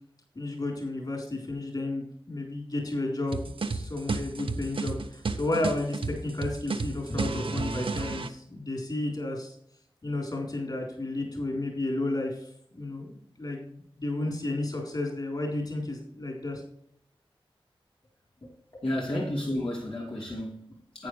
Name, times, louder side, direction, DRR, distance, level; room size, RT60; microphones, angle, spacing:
voice 1, 0.4-9.6 10.0-12.5 12.7-13.1 13.4-16.6, left 2 dB, 45° left, 3.9 m, -32 dB
sound 1, 3.3-8.3, right 4 dB, 75° right, 0.9 m, -32 dB
voice 2, 18.8-21.1, left 1 dB, 80° left, 3.0 m, -32 dB
11.5 x 9.0 x 3.3 m
wide cardioid pair, 95°, 9 cm